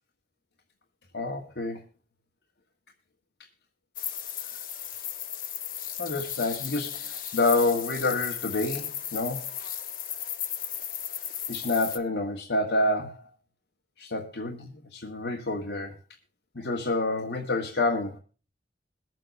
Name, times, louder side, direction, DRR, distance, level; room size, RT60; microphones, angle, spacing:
voice 1, 1.1-1.8 6.0-9.5 11.5-13.3 14.0-15.9 16.5-18.2, left 2 dB, 85° left, -1 dB, 1.6 m, -28 dB
sound 1, 4.0-12.0, left 10 dB, 50° left, 1.2 m, -35 dB
22.5 x 7.7 x 3.1 m, 0.35 s
head